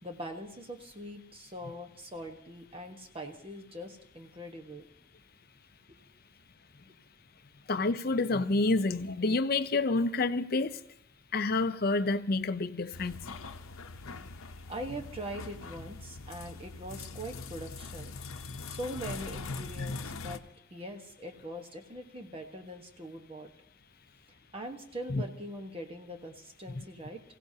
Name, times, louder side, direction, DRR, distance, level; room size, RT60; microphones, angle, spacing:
voice 1, 0.0-4.9 5.9-6.0 14.7-18.2 18.7-20.4 20.7-23.5 24.5-27.2, right 1 dB, 25° right, 1.2 m, -42 dB
voice 2, 7.7-10.8 11.3-13.2 25.1-25.2 26.7-26.8, left 3 dB, 45° left, 0.6 m, -28 dB
sound 1, 12.9-20.4, left 3 dB, 85° left, 0.8 m, -42 dB
27.0 x 16.5 x 2.8 m
head